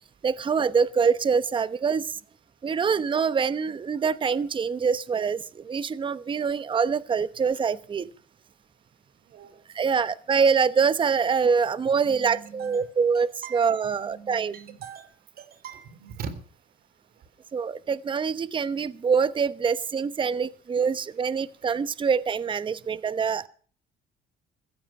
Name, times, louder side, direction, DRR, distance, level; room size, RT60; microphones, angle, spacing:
voice 1, 0.2-2.2 2.6-8.1 9.7-14.5 17.5-23.5, right 6 dB, 30° right, 16 dB, 0.9 m, -25 dB
voice 2, 12.0-12.9 13.4-15.1 15.4-16.3, right 6 dB, 65° right, 13 dB, 3.6 m, -41 dB
15.5 x 14.5 x 5.8 m, 0.43 s
cardioid pair, 110°, 17 cm